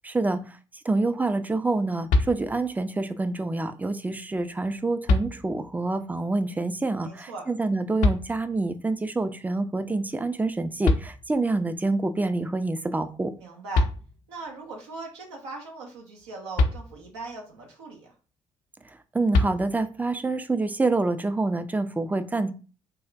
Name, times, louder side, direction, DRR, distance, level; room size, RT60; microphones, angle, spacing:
voice 1, 0.0-0.6 0.8-13.3 19.1-22.5, right 3 dB, 10° right, 11 dB, 0.3 m, -27 dB
sound 1, 2.1-2.9 4.4-4.5 5.1-5.8 8.0-8.8 10.5-10.6 10.8-11.7 13.4-13.5 13.7-14.5 16.6-17.4 19.3-20.1, left 2 dB, 60° left, 0.4 m, -26 dB
voice 2, 7.0-7.5 13.4-13.9 14.3-18.1, right 3 dB, 80° right, 0 dB, 0.6 m, -39 dB
3.4 x 2.1 x 2.5 m, 0.37 s
figure-of-eight pair, 45°, 14 cm